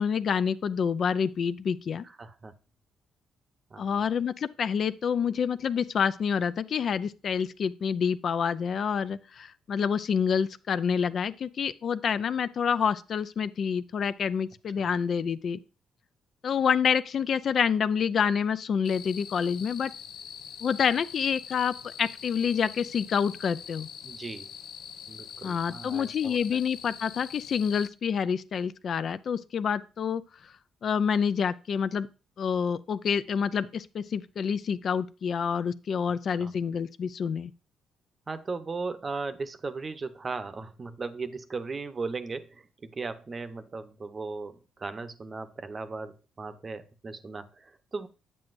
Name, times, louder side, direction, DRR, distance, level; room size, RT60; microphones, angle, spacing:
voice 1, 0.0-2.0 3.8-15.6 16.4-19.9 20.6-23.9 25.4-30.5 30.8-32.1 32.4-37.5, left 7 dB, 55° left, 0.4 m, -28 dB
voice 2, 2.2-2.5 3.7-4.1 14.8-14.9 24.0-24.5 25.1-26.4 36.4-36.5 38.3-48.1, right 4 dB, 35° right, 0.8 m, -37 dB
sound 1, 18.8-27.9, left 8 dB, 75° left, 0.7 m, -44 dB
8.7 x 7.7 x 2.5 m
cardioid pair, 90°, 0 cm